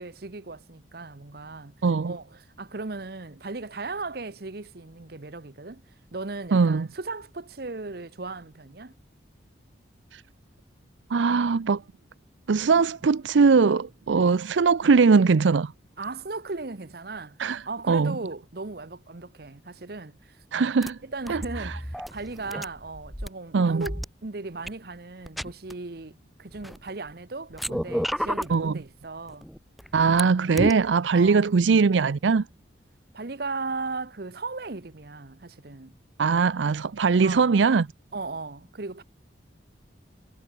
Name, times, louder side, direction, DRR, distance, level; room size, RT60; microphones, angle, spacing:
voice 1, 0.0-1.8 2.0-5.8 6.1-8.9 16.0-17.4 17.7-20.7 21.0-29.5 31.1-31.5 33.1-35.9 37.2-37.6 38.1-39.0, right 3 dB, 55° right, 1.0 m, -37 dB
voice 2, 1.8-2.1 6.5-6.9 10.1-10.2 11.1-11.8 12.5-15.7 17.4-18.2 20.5-21.0 21.3-21.7 23.5-23.9 28.5-28.7 29.9-32.5 36.2-37.9, right 5 dB, 85° right, 0.5 m, -21 dB
sound 1, 20.8-20.9 21.3-23.3 23.8-24.1 24.7-24.8 25.3-25.7 26.5-27.1 27.5-28.5 29.3-30.2 30.6-30.7, equal, ahead, 0.5 m, -31 dB
head